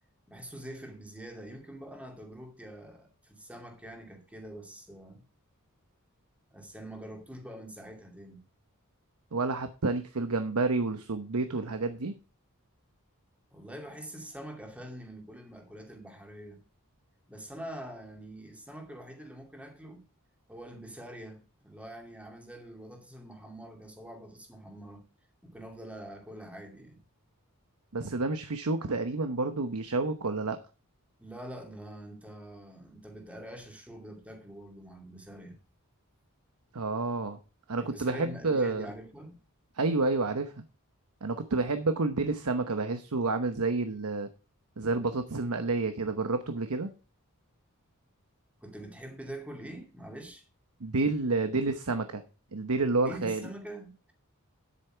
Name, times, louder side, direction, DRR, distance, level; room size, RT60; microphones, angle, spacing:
voice 1, 0.3-5.2 6.5-8.4 13.5-16.6 17.3-20.0 20.5-25.0 25.4-27.0 31.2-35.6 37.8-39.4 48.6-50.5 52.9-54.1, right 1 dB, 5° right, 2.4 m, -45 dB
voice 2, 9.3-12.1 27.9-30.6 36.7-37.4 37.7-38.9 39.7-40.6 41.2-44.3 44.8-46.9 50.8-52.2 52.5-53.5, right 3 dB, 80° right, 1.0 m, -29 dB
10.0 x 8.3 x 4.6 m
head